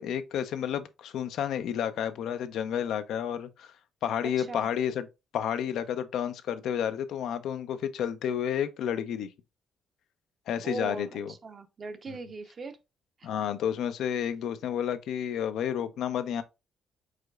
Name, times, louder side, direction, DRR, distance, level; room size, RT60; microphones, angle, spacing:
voice 1, 0.0-3.7 4.0-5.1 5.3-9.3 10.5-11.3 12.1-12.2 13.2-16.4, left 9 dB, 80° left, 0.5 m, -31 dB
voice 2, 4.2-4.7 10.6-12.7 13.2-13.3, right 3 dB, 40° right, 0.7 m, -39 dB
4.9 x 3.8 x 2.3 m
cardioid pair, 90°, 0 cm